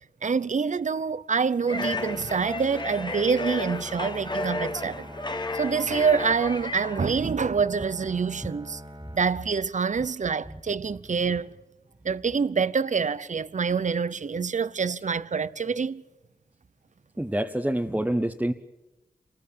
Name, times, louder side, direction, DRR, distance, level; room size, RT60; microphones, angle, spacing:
voice 1, 0.2-5.1 5.5-8.8 9.1-11.5 12.0-16.0, right 5 dB, 55° right, 0.8 m, -26 dB
sound 1, 1.7-7.3, left 2 dB, 30° left, 1.2 m, -33 dB
Bowed string instrument, 1.8-10.0, equal, 30° right, 2.2 m, -44 dB
voice 2, 17.2-18.5, right 1 dB, 10° right, 1.1 m, -26 dB
27.5 x 20.5 x 8.5 m
wide cardioid pair, 65°, 15 cm